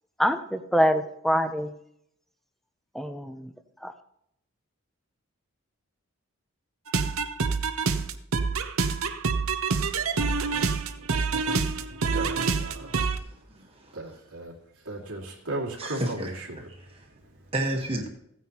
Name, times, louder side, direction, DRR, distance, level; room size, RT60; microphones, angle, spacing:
voice 1, 0.2-1.7 2.9-3.5 3.8-3.9, equal, ahead, 0.5 m, -25 dB
sound 1, 6.9-13.2, right 4 dB, 70° right, 0.8 m, -27 dB
voice 2, 11.2-13.0 13.6-17.5, right 2 dB, 90° right, 2.3 m, -38 dB
voice 3, 12.8-14.0 15.8-16.3 17.5-18.1, right 1 dB, 25° right, 1.3 m, -32 dB
16.0 x 9.5 x 3.0 m
head